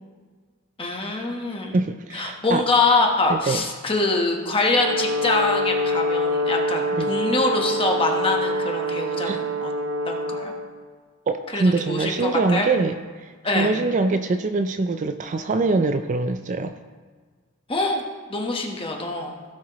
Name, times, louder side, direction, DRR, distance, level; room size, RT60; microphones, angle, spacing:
voice 1, 0.8-1.8 2.1-9.7 10.1-10.5 11.5-12.7 13.4-13.7 17.7-18.0 18.3-19.3, left 3 dB, 25° left, 1 dB, 1.2 m, -24 dB
voice 2, 1.7-2.7 3.3-3.6 7.0-7.1 9.2-9.4 11.3-12.9 13.2-16.7, right 3 dB, 35° right, 9 dB, 0.3 m, -23 dB
Brass instrument, 4.7-10.7, equal, 70° right, 0.9 m, -25 dB
16.5 x 7.5 x 3.1 m, 1.5 s
head